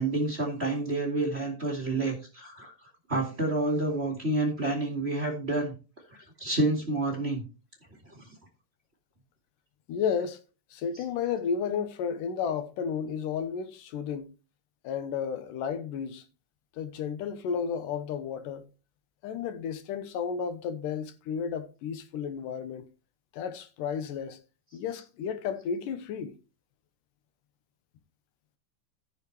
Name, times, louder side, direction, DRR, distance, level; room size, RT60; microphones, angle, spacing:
voice 1, 0.0-2.7 3.1-5.7 6.1-7.4 8.1-8.2 10.9-11.1, right 2 dB, 25° right, 2.0 m, -29 dB
voice 2, 9.9-10.4 10.7-14.3 14.8-16.3 16.7-18.7 19.2-22.9 23.3-24.4 24.7-26.4, left 7 dB, 85° left, 2.6 m, -32 dB
14.5 x 6.5 x 3.3 m
omnidirectional pair, 3.7 m